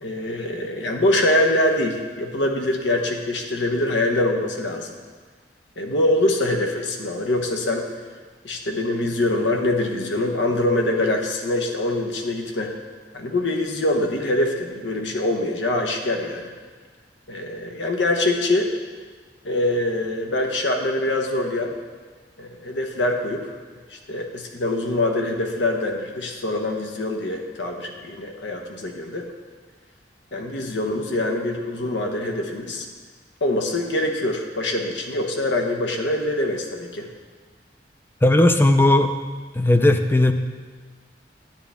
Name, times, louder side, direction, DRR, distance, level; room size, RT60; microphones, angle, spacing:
voice 1, 0.0-5.0 5.8-7.9 8.4-12.7 13.1-16.5 17.3-18.7 19.4-21.7 22.4-23.5 23.9-29.3 30.3-32.9 33.4-37.1, left 1 dB, 80° left, 3 dB, 1.0 m, -24 dB
voice 2, 38.2-39.1 39.5-40.3, left 1 dB, 10° left, 7 dB, 0.4 m, -16 dB
10.5 x 9.9 x 3.5 m, 1.4 s
head